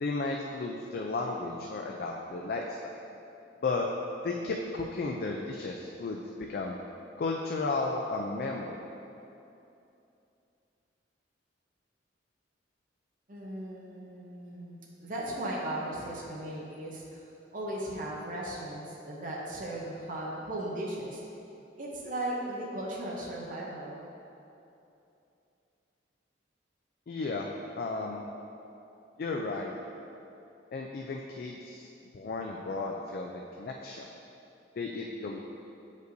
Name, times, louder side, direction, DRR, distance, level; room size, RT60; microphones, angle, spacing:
voice 1, 0.0-3.0 3.6-3.9 4.2-6.2 6.5-6.8 7.2-8.8 27.1-28.2 29.2-29.8 30.7-31.9 32.1-34.1 34.8-35.4, left 3 dB, 50° left, 0 dB, 0.3 m, -34 dB
voice 2, 13.3-17.2 17.5-21.2 21.8-24.0, right 1 dB, 45° right, -4 dB, 0.7 m, -37 dB
7.9 x 5.2 x 2.6 m, 2.8 s
head